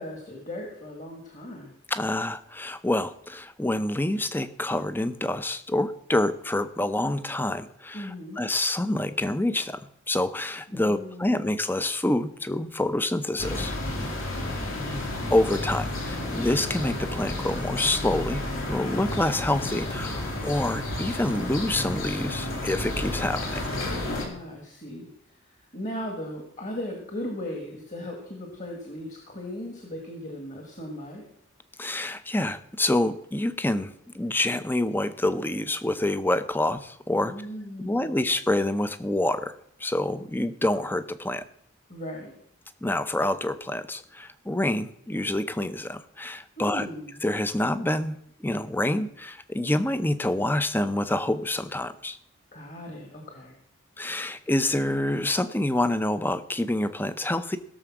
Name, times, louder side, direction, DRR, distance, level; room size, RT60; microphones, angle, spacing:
voice 1, 0.0-1.7 7.9-8.4 10.7-11.5 14.0-15.1 23.9-31.3 37.2-38.2 41.9-42.3 46.6-47.2 52.5-53.6, left 1 dB, 35° left, 1 dB, 2.0 m, -38 dB
voice 2, 1.9-13.8 15.3-23.6 31.8-37.3 37.8-39.5 39.8-41.4 42.8-46.9 47.2-52.2 54.0-57.6, left 1 dB, 10° left, 12 dB, 0.6 m, -27 dB
sound 1, 13.4-24.2, left 1 dB, 70° left, 3.4 m, -31 dB
16.5 x 6.9 x 6.1 m, 0.69 s
head